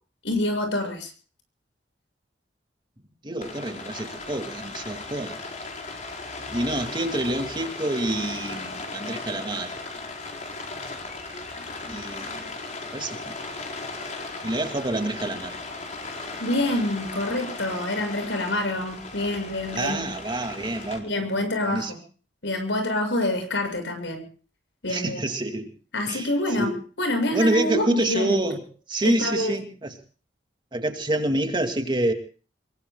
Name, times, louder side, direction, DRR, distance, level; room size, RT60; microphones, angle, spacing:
voice 1, 0.2-1.1 16.4-20.1 21.0-22.0 22.4-24.2 24.8-25.2 25.9-26.7 27.0-28.4 29.0-29.5, left 1 dB, 90° left, 7 dB, 7.1 m, -26 dB
voice 2, 3.2-5.4 6.5-9.7 11.9-12.5 12.9-13.4 14.4-15.6 19.7-21.9 24.9-25.7 26.1-26.3 26.6-26.7 27.3-29.9 30.7-32.1, right 1 dB, 25° right, 5 dB, 2.5 m, -27 dB
Rain, 3.4-21.0, left 3 dB, 45° left, 4.7 m, -37 dB
26.0 x 23.0 x 2.3 m, 0.39 s
head